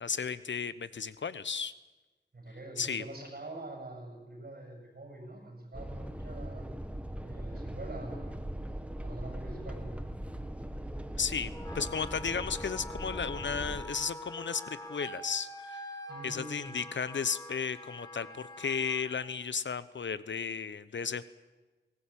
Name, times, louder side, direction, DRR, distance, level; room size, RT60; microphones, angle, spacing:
voice 1, 0.0-1.7 2.8-3.0 11.2-15.8 16.2-21.2, left 6 dB, 75° left, 16 dB, 1.0 m, -34 dB
voice 2, 2.3-6.7 7.2-8.4 9.0-10.0 16.1-16.8, right 1 dB, 55° right, 3 dB, 6.8 m, -45 dB
sound 1, 5.7-13.8, right 1 dB, 5° right, 1.6 m, -40 dB
Wind instrument woodwind instrument, 11.5-19.2, left 1 dB, 20° left, 3.4 m, -45 dB
22.0 x 18.0 x 8.6 m, 1.2 s
wide cardioid pair, 80°, 19 cm